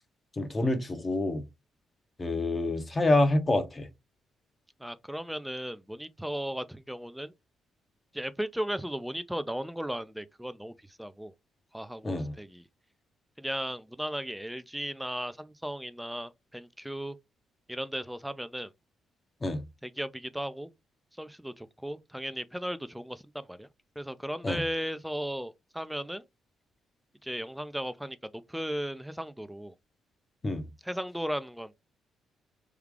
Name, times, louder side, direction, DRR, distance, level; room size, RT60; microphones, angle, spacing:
voice 1, 0.4-1.4 2.2-3.9 12.0-12.3 19.4-19.6 24.4-24.6 30.4-30.7, left 2 dB, 25° left, 0.7 m, -27 dB
voice 2, 4.8-7.3 8.1-11.3 11.7-12.6 13.4-17.2 17.7-18.7 19.8-20.7 21.2-23.7 24.0-26.2 27.2-28.2 28.5-29.7 30.8-31.8, equal, 5° right, 0.4 m, -36 dB
3.6 x 2.3 x 3.2 m
cardioid pair, 90°, 0 cm